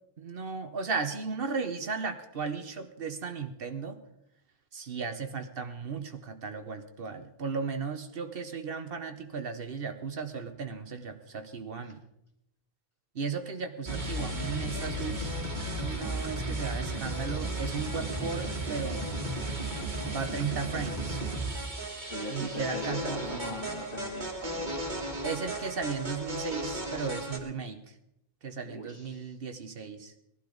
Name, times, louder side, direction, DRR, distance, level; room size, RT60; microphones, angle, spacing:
voice 1, 0.2-4.0 4.7-12.0 13.1-15.3 15.8-19.1 20.1-21.2 22.3-23.5 25.2-27.8 28.4-30.1, right 5 dB, 65° right, 8 dB, 1.1 m, -35 dB
sound 1, 13.9-27.4, right 1 dB, 50° right, 1.9 m, -34 dB
voice 2, 22.1-24.9 28.6-29.3, left 2 dB, 30° left, 2 dB, 1.9 m, -40 dB
19.0 x 12.0 x 3.9 m, 0.80 s
omnidirectional pair, 1.0 m